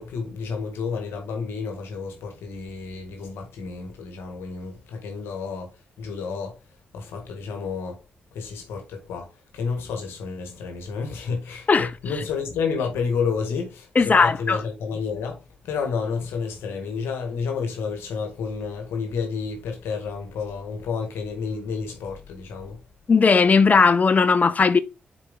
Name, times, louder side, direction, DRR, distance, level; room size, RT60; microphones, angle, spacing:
voice 1, 0.0-6.6 6.9-8.0 8.3-22.8, left 5 dB, 90° left, 1.8 m, -30 dB
voice 2, 13.9-14.6 23.1-24.8, left 5 dB, 40° left, 0.8 m, -17 dB
7.1 x 4.6 x 3.8 m
cardioid pair, 65°, 4 cm